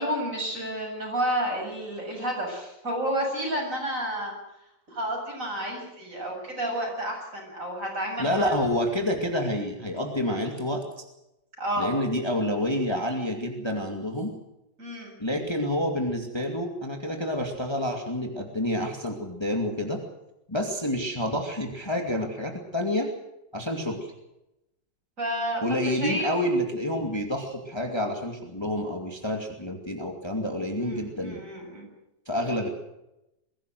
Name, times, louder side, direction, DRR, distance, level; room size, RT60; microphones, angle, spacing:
voice 1, 0.0-4.3 4.9-8.5 11.6-11.9 14.8-15.1 25.2-26.3 30.8-31.9, right 1 dB, 45° right, 1 dB, 7.7 m, -30 dB
voice 2, 8.2-10.8 11.8-14.3 15.2-20.0 20.5-23.1 23.5-24.1 25.6-31.4 32.3-32.7, left 1 dB, 15° left, 3 dB, 2.4 m, -28 dB
22.5 x 17.0 x 7.8 m, 0.89 s
omnidirectional pair, 2.0 m